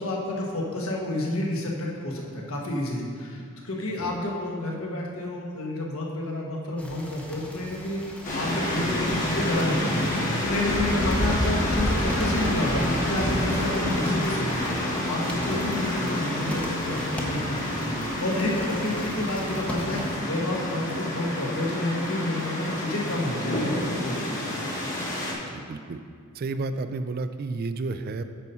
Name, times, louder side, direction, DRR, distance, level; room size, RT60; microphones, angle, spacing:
voice 1, 0.0-10.1 10.4-24.3, left 1 dB, 65° left, -2 dB, 1.3 m, -30 dB
sound 1, 6.8-20.1, equal, 5° left, 0.8 m, -34 dB
sound 2, 8.2-25.3, left 1 dB, 35° left, 1.4 m, -28 dB
voice 2, 15.5-15.8 25.3-26.0 26.4-28.2, right 3 dB, 45° right, 10 dB, 0.3 m, -32 dB
9.1 x 4.2 x 5.5 m, 2.1 s
head